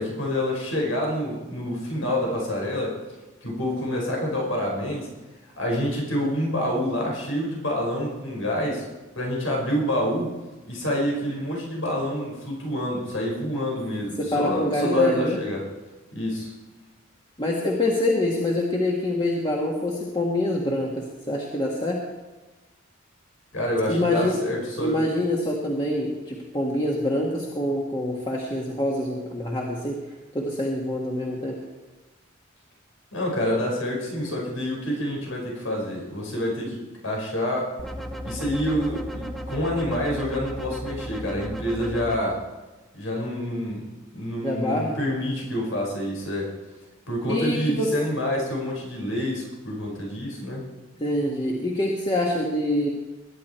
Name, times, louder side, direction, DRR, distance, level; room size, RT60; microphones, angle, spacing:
voice 1, 0.0-3.0 3.4-5.1 5.6-8.9 9.2-10.4 10.6-15.7 16.1-16.5 23.5-25.0 33.1-37.8 38.2-42.4 42.9-43.9 44.1-46.5 47.1-50.6, left 1 dB, 90° left, -1 dB, 5.2 m, -27 dB
voice 2, 14.2-15.4 17.4-22.0 23.9-24.4 24.8-30.0 30.3-31.6 44.4-44.9 47.3-47.9 51.0-52.9, left 1 dB, 25° left, -2 dB, 1.7 m, -25 dB
sound 1, 37.8-42.2, equal, ahead, 0.9 m, -35 dB
21.5 x 11.0 x 4.5 m, 1.2 s
head